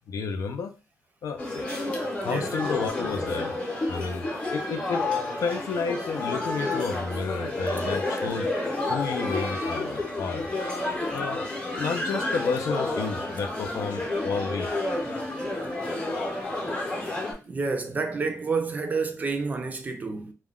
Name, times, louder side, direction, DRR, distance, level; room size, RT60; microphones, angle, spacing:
voice 1, 0.1-0.7 1.2-1.6 2.2-3.5 3.9-5.1 5.4-8.5 8.9-10.5 11.1-14.7, left 5 dB, 75° left, 0.4 m, -31 dB
sound 1, 1.4-17.3, left 2 dB, 20° left, 0.7 m, -30 dB
voice 2, 2.3-2.6 17.4-20.3, right 4 dB, 30° right, 0.4 m, -29 dB
2.2 x 2.1 x 3.5 m
wide cardioid pair, 160°, 6 cm